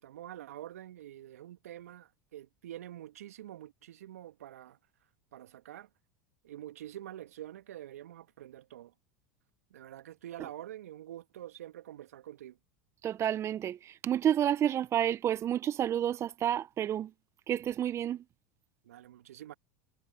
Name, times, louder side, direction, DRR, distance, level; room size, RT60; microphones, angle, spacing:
voice 1, 0.0-4.8 5.3-5.9 6.4-8.9 9.7-12.6 18.8-19.5, right 12 dB, 75° right, 2.1 m, -46 dB
voice 2, 13.0-17.1 17.5-18.2, right 10 dB, 35° right, 1.1 m, -30 dB
hypercardioid pair, 85°, 8 cm